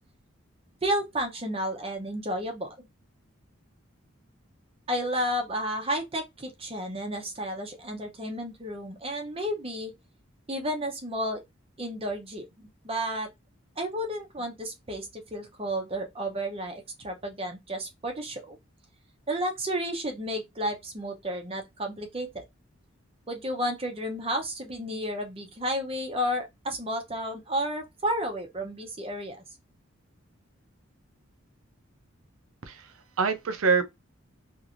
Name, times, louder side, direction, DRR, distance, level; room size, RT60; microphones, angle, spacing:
voice 1, 0.8-2.7 4.9-9.9 10.5-11.4 11.8-13.3 13.8-18.6 19.3-22.4 23.3-29.4, equal, 25° right, 0.6 m, -32 dB
voice 2, 32.6-33.8, right 5 dB, 85° right, 0.5 m, -26 dB
3.1 x 2.5 x 2.4 m
head